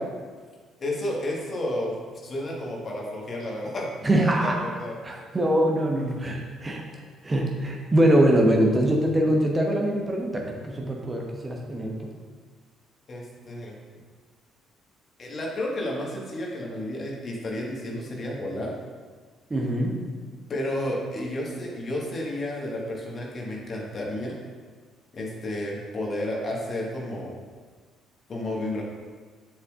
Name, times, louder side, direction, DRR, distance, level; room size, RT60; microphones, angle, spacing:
voice 1, 0.8-3.9 4.4-5.0 13.1-13.8 15.2-18.7 20.5-24.4 25.1-27.4 28.3-28.8, left 1 dB, 40° left, -2 dB, 1.6 m, -31 dB
voice 2, 4.0-4.6 5.0-6.8 7.2-12.1 19.5-20.0, right 1 dB, 25° right, 0 dB, 1.0 m, -23 dB
6.9 x 6.6 x 2.5 m, 1.5 s
figure-of-eight pair, 50°, 0 cm